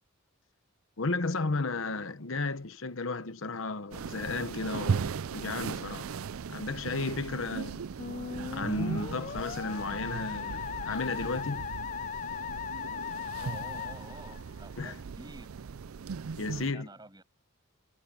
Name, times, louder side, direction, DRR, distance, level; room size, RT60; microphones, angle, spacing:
voice 1, 1.0-6.1 6.5-7.8 8.5-11.7 14.8-15.0 16.4-16.9, left 3 dB, 70° left, 1.0 m, -34 dB
sound 1, 3.9-16.7, right 6 dB, 85° right, 0.5 m, -38 dB
Musical instrument, 8.0-14.9, left 7 dB, 35° left, 0.3 m, -38 dB
voice 2, 13.4-15.5 16.7-17.2, right 2 dB, 20° right, 7.5 m, -49 dB
head